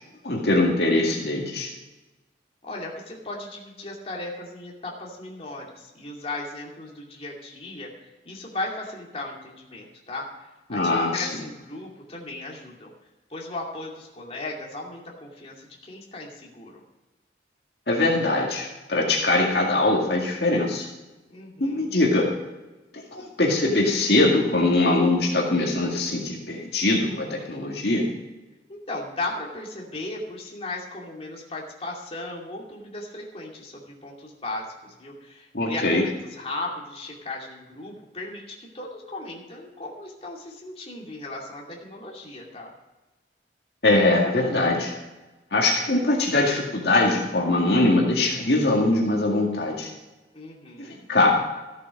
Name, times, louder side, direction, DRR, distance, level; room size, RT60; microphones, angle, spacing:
voice 1, 0.2-1.7 10.7-11.3 17.9-20.9 21.6-22.3 23.1-28.0 35.5-36.0 43.8-44.9 45.5-49.9 50.8-51.3, left 2 dB, 65° left, -1 dB, 2.0 m, -22 dB
voice 2, 2.6-10.3 10.7-12.9 13.3-16.8 21.3-21.9 28.7-42.7 50.3-51.0, left 2 dB, 35° left, -2 dB, 2.5 m, -36 dB
14.5 x 8.3 x 5.3 m, 1.1 s
head